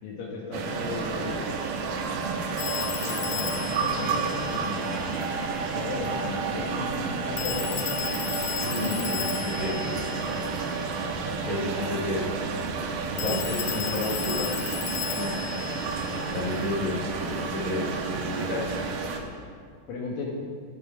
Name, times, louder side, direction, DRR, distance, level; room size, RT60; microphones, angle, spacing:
voice 1, 0.0-1.6 3.0-5.3 5.7-7.8 8.7-9.8 13.4-14.5 19.9-20.2, left 3 dB, 60° left, -2 dB, 2.6 m, -36 dB
sound 1, 0.5-19.2, right 4 dB, 85° right, 1.8 m, -30 dB
Telephone, 2.6-5.2 7.4-11.0 13.2-16.7, left 14 dB, 85° left, 2.4 m, -35 dB
voice 2, 8.6-10.4 11.4-12.3 13.1-14.4 15.1-15.4 16.3-18.7, left 2 dB, 25° right, -6 dB, 0.8 m, -32 dB
11.0 x 10.5 x 5.1 m, 2.1 s
omnidirectional pair, 5.2 m